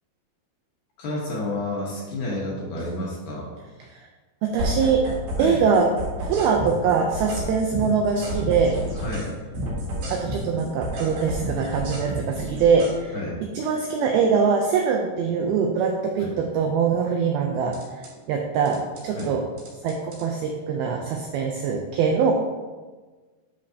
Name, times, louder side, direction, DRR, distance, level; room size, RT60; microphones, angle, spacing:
voice 1, 1.0-3.5 5.4-5.6 9.0-9.3 13.1-13.4 16.2-16.3 19.1-19.4, left 2 dB, 70° left, -3 dB, 2.4 m, -30 dB
voice 2, 4.4-8.8 10.1-13.2 13.6-17.8 18.3-19.5 19.8-22.3, right 5 dB, 85° right, 2 dB, 2.2 m, -23 dB
sound 1, 4.6-5.5 5.7-9.3 9.5-12.9 17.7-18.1 18.7-19.2 19.6-20.2, equal, 70° right, 4.2 m, -30 dB
10.0 x 5.3 x 2.8 m, 1.3 s
omnidirectional pair, 5.0 m